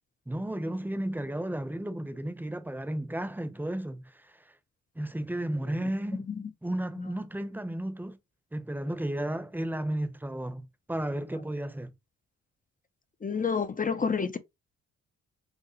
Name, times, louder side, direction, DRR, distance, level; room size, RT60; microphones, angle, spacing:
voice 1, 0.3-4.5 4.9-6.3 6.6-8.2 8.5-11.9, right 1 dB, 5° right, 0.9 m, -33 dB
voice 2, 13.2-14.4, left 5 dB, 25° left, 0.6 m, -28 dB
4.9 x 2.1 x 3.0 m
supercardioid pair, 60°, 33 cm